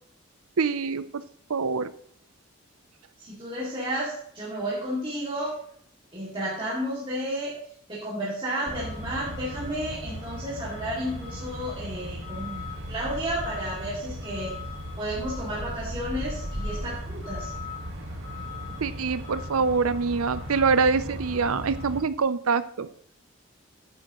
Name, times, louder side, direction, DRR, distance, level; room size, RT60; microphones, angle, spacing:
voice 1, 0.6-1.0 1.5-1.9 18.8-22.9, right 5 dB, 85° right, 14 dB, 0.6 m, -25 dB
voice 2, 3.2-5.6 6.1-7.5 7.9-14.6 15.0-17.5, right 1 dB, 25° right, -8 dB, 2.4 m, -32 dB
Truck, 8.7-22.0, left 1 dB, 60° right, 1.7 m, -36 dB
10.0 x 9.6 x 3.1 m, 0.63 s
head